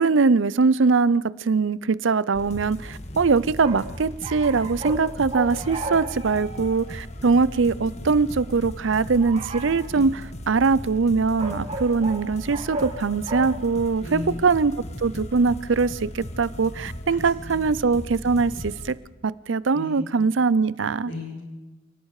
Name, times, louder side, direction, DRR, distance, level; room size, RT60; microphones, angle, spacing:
voice 1, 0.0-10.1 10.5-14.7 15.0-18.9 19.2-21.1, right 4 dB, 75° right, 18 dB, 0.6 m, -22 dB
sound 1, 2.3-18.9, left 1 dB, 35° left, 1.6 m, -37 dB
sound 2, 3.6-5.0 5.3-6.8 9.2-9.8 11.4-12.2 12.5-12.9 13.3-13.4, right 2 dB, 35° right, 4.4 m, -34 dB
voice 2, 14.0-14.4 17.1-17.2 17.5-17.6 19.7-20.0 21.0-21.4, left 2 dB, 75° left, -1 dB, 7.8 m, -35 dB
29.5 x 18.0 x 4.9 m, 1.1 s
head